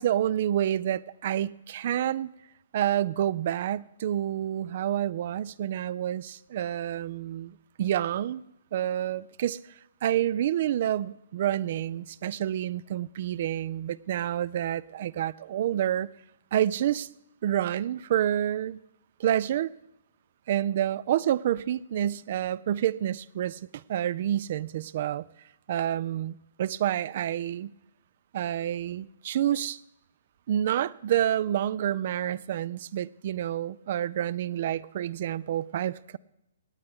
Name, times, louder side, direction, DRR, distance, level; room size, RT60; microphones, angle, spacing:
voice 1, 0.0-2.3 2.7-8.4 8.7-9.6 10.0-16.1 16.5-17.1 17.4-18.8 19.2-19.7 20.5-25.2 25.7-27.7 28.3-29.8 30.5-36.2, right 11 dB, 50° right, 0.3 m, -28 dB
18.0 x 8.6 x 3.6 m
figure-of-eight pair, 130°, 0 cm